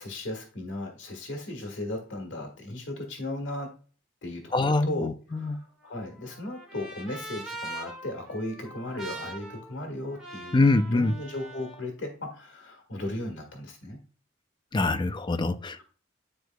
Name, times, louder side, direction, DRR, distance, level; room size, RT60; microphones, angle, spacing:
voice 1, 0.0-3.7 4.2-5.6 5.8-10.6 10.9-14.0, left 1 dB, 80° left, 1.6 m, -36 dB
voice 2, 4.5-5.6 10.5-11.1 14.7-15.8, left 2 dB, 25° left, 0.4 m, -24 dB
Trumpet, 5.5-11.8, right 2 dB, 5° right, 1.5 m, -43 dB
10.0 x 4.7 x 2.3 m
head